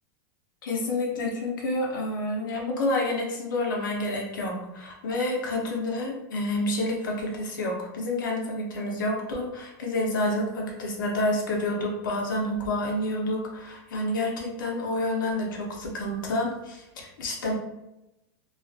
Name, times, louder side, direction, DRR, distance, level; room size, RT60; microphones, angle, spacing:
voice 1, 0.6-17.5, left 1 dB, 85° left, 0 dB, 0.8 m, -29 dB
2.5 x 2.4 x 2.4 m, 0.91 s
supercardioid pair, 180°, 11 cm